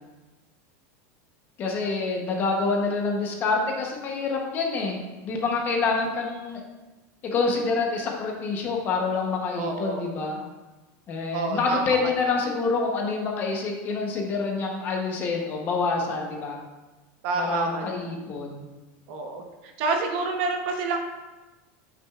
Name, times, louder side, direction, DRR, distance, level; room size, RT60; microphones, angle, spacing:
voice 1, 1.6-5.0 5.2-6.6 7.2-10.4 11.1-16.6 17.3-18.7, left 4 dB, 25° left, 1 dB, 0.9 m, -27 dB
voice 2, 9.6-10.0 11.3-12.1 17.2-18.0 19.1-19.4 19.8-21.0, right 4 dB, 45° right, 3 dB, 0.8 m, -28 dB
8.6 x 6.1 x 2.4 m, 1.2 s
supercardioid pair, 175°, 8 cm